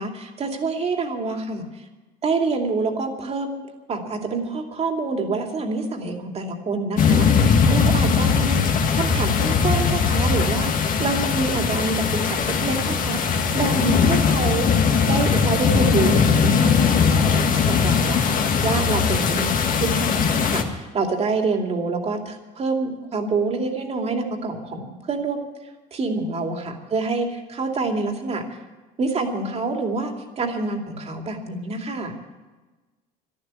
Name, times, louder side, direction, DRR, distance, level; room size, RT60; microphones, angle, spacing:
voice 1, 0.0-1.8 2.2-3.6 3.9-14.7 15.1-18.2 18.6-25.5 25.9-28.6 29.0-32.1, right 3 dB, 35° right, 4 dB, 2.6 m, -27 dB
sound 1, 7.0-20.6, left 6 dB, 50° left, 2.0 m, -20 dB
12.5 x 12.0 x 9.6 m, 1.2 s
cardioid pair, 125°, 18 cm